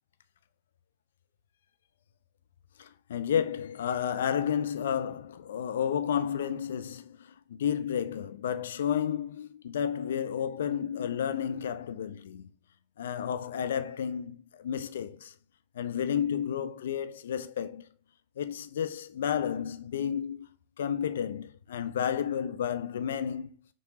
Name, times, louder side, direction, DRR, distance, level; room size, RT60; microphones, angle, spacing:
voice 1, 2.8-12.5 13.0-15.3 15.7-17.9 18.4-20.5 20.8-23.5, left 8 dB, 60° left, 0.3 m, -31 dB
4.8 x 2.9 x 2.7 m
figure-of-eight pair, 90°, 0 cm